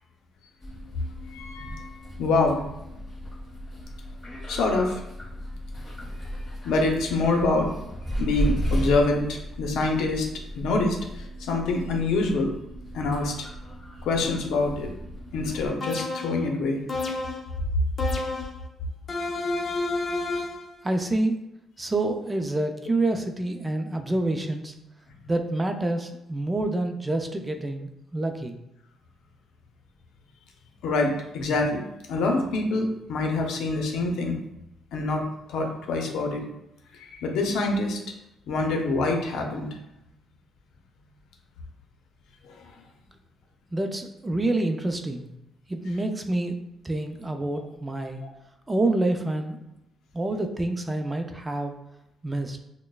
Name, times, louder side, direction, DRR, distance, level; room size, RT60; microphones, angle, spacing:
sound 1, 0.6-15.7, equal, 20° left, 1.4 m, -35 dB
voice 1, 1.3-1.9 2.2-2.6 4.5-5.0 6.6-7.7 8.2-10.3 10.5-12.5 12.9-13.5 14.0-14.9 15.3-16.8 19.7-19.9 30.8-34.4 34.9-36.5 36.9-38.0 38.5-39.7 42.4-42.7, left 3 dB, 85° left, 2 dB, 0.7 m, -26 dB
sound 2, 15.8-16.4 16.9-17.5 18.0-18.6 19.1-20.7, left 2 dB, 35° left, 0.7 m, -30 dB
voice 2, 20.8-21.4 21.8-24.7 25.3-28.6 43.7-45.3 45.7-46.6 46.8-48.2 48.7-49.6 50.1-51.7 52.2-52.6, right 2 dB, 20° right, 5 dB, 0.4 m, -27 dB
6.2 x 2.1 x 2.3 m, 0.86 s
cardioid pair, 90°, 0 cm